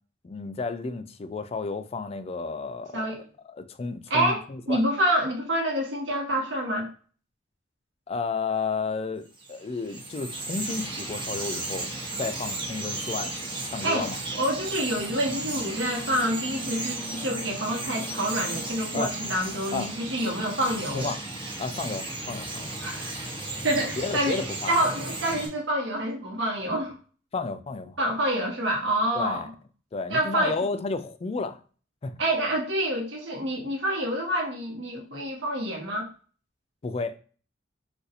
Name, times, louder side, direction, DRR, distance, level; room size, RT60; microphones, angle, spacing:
voice 1, 0.2-3.1 3.5-4.8 8.1-11.9 12.2-13.3 13.7-14.2 18.9-19.1 19.7-19.9 20.9-21.2 21.6-22.7 24.0-24.7 27.3-28.0 29.2-29.5 29.9-31.6 32.0-32.2 36.8-37.2, left 4 dB, 30° left, 0.3 m, -32 dB
voice 2, 2.9-3.2 4.1-6.9 13.8-21.1 22.8-23.3 23.6-24.4 24.7-27.0 28.0-29.4 30.1-30.6 32.2-36.1, right 1 dB, 70° right, 1.1 m, -27 dB
Bird vocalization bird call bird song, 9.3-25.5, right 2 dB, 25° right, 1.0 m, -34 dB
2.6 x 2.4 x 4.1 m
head